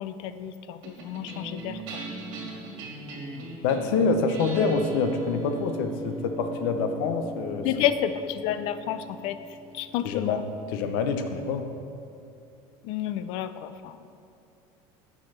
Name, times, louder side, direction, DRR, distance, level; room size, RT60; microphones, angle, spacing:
voice 1, 0.0-2.0 7.6-9.4 9.7-10.4 12.8-14.1, left 10 dB, 55° left, 11 dB, 0.4 m, -30 dB
sound 1, 0.8-11.4, right 1 dB, 75° right, 1.8 m, -39 dB
voice 2, 3.6-7.7 10.0-10.4 10.7-11.7, left 4 dB, 90° left, 7 dB, 0.7 m, -26 dB
10.0 x 6.2 x 3.2 m, 2.6 s
cardioid pair, 160°, 11 cm